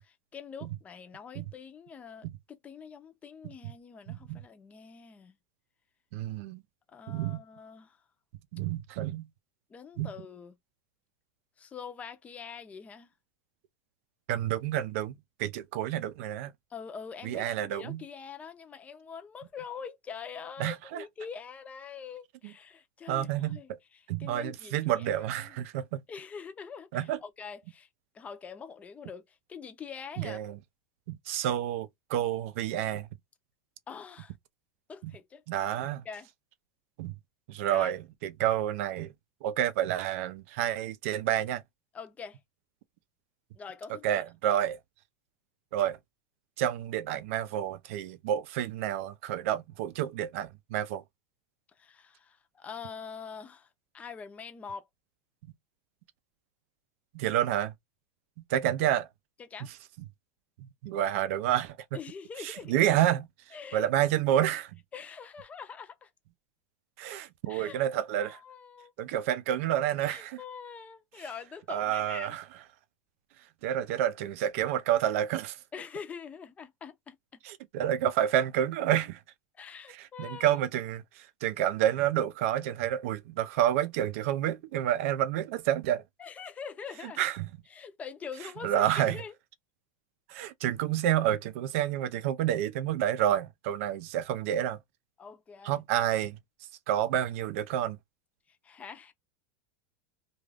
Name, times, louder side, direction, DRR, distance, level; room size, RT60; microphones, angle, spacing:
voice 1, 0.0-5.4 6.9-8.0 9.7-10.5 11.6-13.1 16.7-25.1 25.4-25.6 26.1-27.9 28.1-30.4 33.9-34.3 34.9-35.4 36.0-36.3 37.7-37.9 41.9-42.4 43.5-44.2 51.8-53.7 53.9-54.9 59.4-59.7 61.9-62.8 63.5-63.9 64.9-66.1 67.5-67.9 68.2-68.9 70.1-72.4 75.7-77.4 79.6-80.6 86.2-87.2 87.7-89.3 95.2-95.8 98.5-99.1, left 6 dB, 20° left, 0.5 m, -44 dB
voice 2, 4.1-4.4 6.1-6.6 7.1-7.4 8.5-9.3 10.0-10.1 14.3-15.1 15.4-16.5 17.2-18.0 20.6-21.0 23.1-23.6 24.1-26.0 26.9-27.2 30.2-30.6 31.1-33.1 35.0-35.1 35.5-36.0 37.0-37.1 37.5-39.1 39.4-41.6 44.0-44.8 45.7-46.0 46.6-51.0 57.1-57.7 58.5-59.1 60.6-61.8 62.4-63.3 63.7-64.7 67.0-68.4 69.0-70.4 71.7-72.4 73.6-75.6 77.4-79.2 79.9-86.0 87.2-87.5 88.6-89.2 90.3-94.8 95.6-96.4 96.9-98.0, right 11 dB, 65° right, 0.5 m, -29 dB
2.4 x 2.3 x 3.3 m
supercardioid pair, 135°, 7 cm